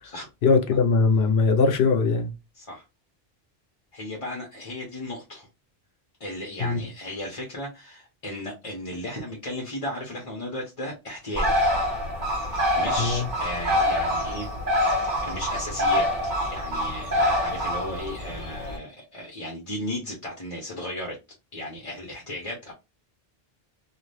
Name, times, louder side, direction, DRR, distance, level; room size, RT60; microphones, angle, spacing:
voice 1, 0.4-2.3 6.6-6.9 13.0-13.3, left 4 dB, 80° left, 0.9 m, -21 dB
voice 2, 3.9-5.5 6.2-11.5 12.5-14.5 15.2-21.2 21.5-22.7, left 1 dB, 35° left, 0.8 m, -35 dB
Bird, 11.4-18.8, left 1 dB, 50° right, 1.1 m, -25 dB
2.6 x 2.4 x 3.3 m
omnidirectional pair, 1.0 m